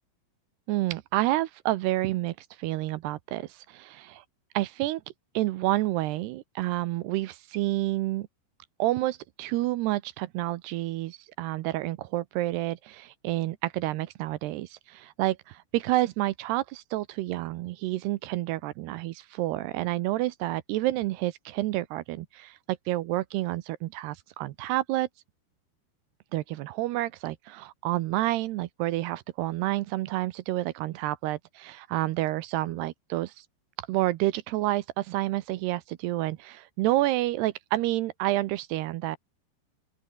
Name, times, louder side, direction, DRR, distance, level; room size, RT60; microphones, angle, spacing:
voice 1, 0.7-4.2 4.5-5.0 5.3-8.3 8.8-25.1 26.3-33.3 33.9-39.2, right 16 dB, 75° right, 2.7 m, -29 dB
open air
omnidirectional pair, 5.1 m